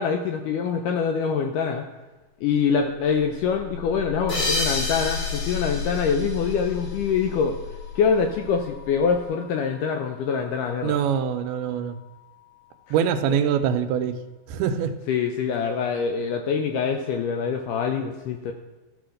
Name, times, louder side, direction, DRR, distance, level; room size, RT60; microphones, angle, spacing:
voice 1, 0.0-1.8 2.4-7.6 8.0-11.0 15.1-18.5, left 6 dB, 80° left, 4 dB, 1.9 m, -24 dB
sound 1, 3.0-12.6, left 8 dB, 60° left, 3.1 m, -35 dB
sound 2, 4.3-7.4, left 1 dB, 40° left, 2.3 m, -30 dB
voice 2, 10.8-12.0 12.9-14.2 14.5-14.9, right 8 dB, 85° right, 8 dB, 2.6 m, -24 dB
14.0 x 5.0 x 6.4 m, 1.1 s
omnidirectional pair, 4.4 m